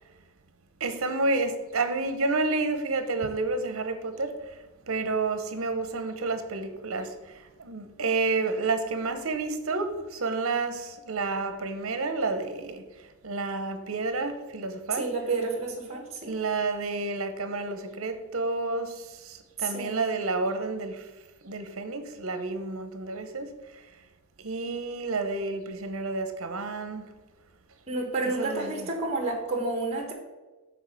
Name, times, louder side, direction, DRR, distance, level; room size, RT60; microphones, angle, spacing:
voice 1, 0.8-4.3 4.9-7.1 7.6-12.8 13.2-15.1 16.2-21.0 21.4-23.5 24.4-27.1 28.4-28.8, right 3 dB, 70° right, 8 dB, 0.9 m, -30 dB
voice 2, 14.9-16.4 19.6-20.0 27.9-30.1, right 3 dB, 30° right, 0 dB, 1.3 m, -30 dB
7.2 x 3.9 x 6.5 m, 1.2 s
head